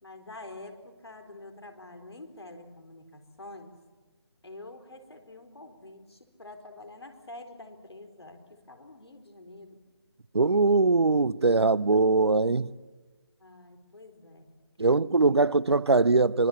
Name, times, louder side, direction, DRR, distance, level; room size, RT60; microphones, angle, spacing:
voice 1, 0.0-3.8 4.4-9.8 13.4-15.5, left 2 dB, 75° left, 4.1 m, -47 dB
voice 2, 10.3-12.7 14.8-16.5, right 3 dB, 75° right, 0.8 m, -22 dB
25.0 x 21.5 x 7.3 m
figure-of-eight pair, 155°, 14 cm